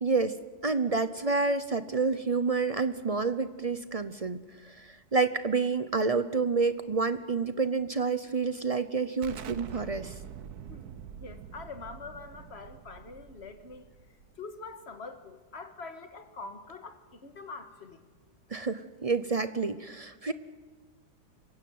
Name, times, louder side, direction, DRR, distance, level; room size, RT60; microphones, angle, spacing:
voice 1, 0.0-0.4 0.6-10.1 18.5-20.3, right 4 dB, 40° right, 12 dB, 0.5 m, -29 dB
Explosion, 9.2-14.7, right 8 dB, 70° right, 1.4 m, -45 dB
voice 2, 10.7-13.9 14.4-18.1, left 4 dB, 40° left, 8 dB, 1.9 m, -44 dB
25.0 x 16.0 x 9.3 m, 1.4 s
omnidirectional pair, 1.8 m